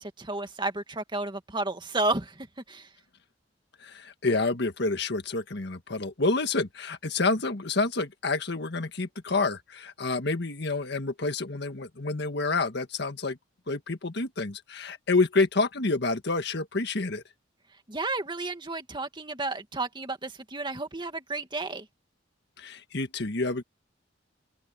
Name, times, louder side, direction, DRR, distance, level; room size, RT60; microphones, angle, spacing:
voice 1, 0.0-2.9 17.9-21.9, right 2 dB, 25° right, 2.2 m, -32 dB
voice 2, 3.8-13.4 13.7-17.2 22.6-23.6, left 3 dB, 65° left, 1.6 m, -28 dB
open air
head